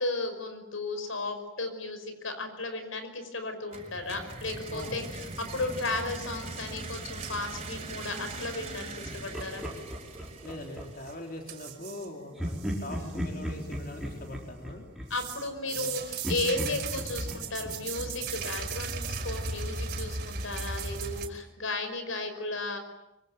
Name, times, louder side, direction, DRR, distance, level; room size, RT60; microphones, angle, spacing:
voice 1, 0.0-9.6 13.0-13.2 15.1-22.8, left 2 dB, 85° left, 8 dB, 5.4 m, -34 dB
sound 1, 3.7-11.5, right 3 dB, 30° right, 5.8 m, -41 dB
voice 2, 4.7-5.1 10.4-14.8 15.6-15.9, left 1 dB, 45° left, 2 dB, 3.3 m, -42 dB
sound 2, 7.1-8.6 11.0-11.1 11.5-12.1 12.4-13.2 13.6-14.4 15.1-21.3, right 4 dB, 50° right, 5.1 m, -37 dB
Laughter, 9.0-11.2 12.4-15.9 16.2-19.0, equal, ahead, 4.7 m, -37 dB
25.0 x 24.5 x 9.2 m, 0.93 s
head